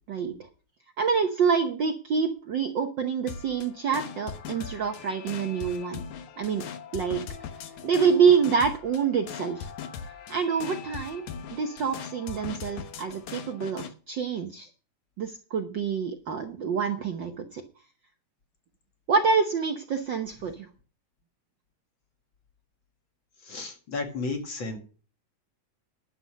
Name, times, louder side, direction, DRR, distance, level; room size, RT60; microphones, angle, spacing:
voice 1, 1.0-6.0 6.4-6.6 6.9-7.2 7.8-9.7 10.3-11.2 11.5-14.7 15.2-17.6 19.1-20.7, right 6 dB, 90° right, 5 dB, 1.0 m, -26 dB
sound 1, 3.3-13.9, left 7 dB, 70° left, 2.5 m, -40 dB
voice 2, 23.4-24.8, left 3 dB, 40° left, 4 dB, 2.7 m, -33 dB
11.5 x 7.8 x 6.3 m, 0.37 s
omnidirectional pair, 3.5 m